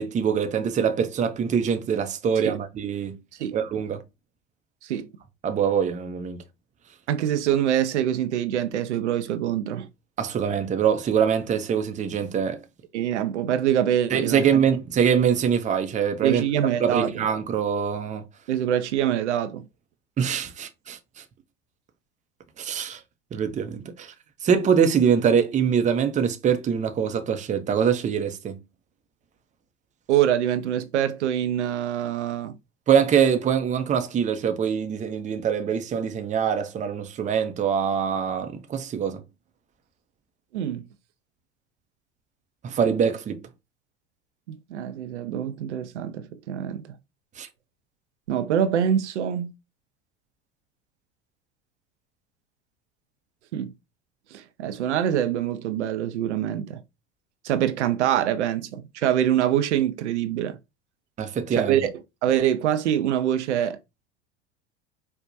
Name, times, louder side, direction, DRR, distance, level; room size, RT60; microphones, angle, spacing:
voice 1, 0.0-3.2 3.5-4.0 5.4-6.4 10.2-12.6 14.1-16.4 16.8-18.2 20.2-21.0 22.6-23.0 23.3-24.1 24.4-28.6 32.9-39.2 42.6-43.4 47.4-47.5 61.2-61.8, right 7 dB, 20° right, 0.6 m, -24 dB
voice 2, 7.1-9.9 12.9-14.6 16.2-17.2 18.5-19.6 30.1-32.6 40.5-40.8 44.5-46.9 48.3-49.5 53.5-53.7 54.3-56.8 57.4-60.6 61.5-61.9 62.2-63.8, right 10 dB, 85° right, 0.5 m, -25 dB
4.5 x 2.2 x 2.6 m
hypercardioid pair, 85°, 34 cm